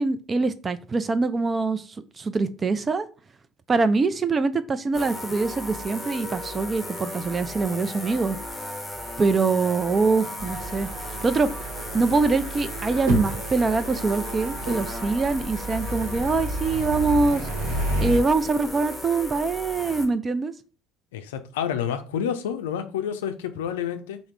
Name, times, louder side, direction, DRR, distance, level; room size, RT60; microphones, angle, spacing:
voice 1, 0.0-1.8 2.2-3.1 3.7-8.4 9.2-10.9 11.2-11.5 11.9-17.5 18.0-20.5, right 3 dB, 30° right, 0.4 m, -24 dB
sound 1, 4.9-20.1, left 1 dB, 10° left, 0.9 m, -36 dB
sound 2, 10.4-18.2, right 1 dB, 70° right, 0.9 m, -31 dB
voice 2, 21.1-24.2, left 8 dB, 75° left, 0.4 m, -29 dB
3.5 x 2.1 x 4.3 m
figure-of-eight pair, 60°, 0 cm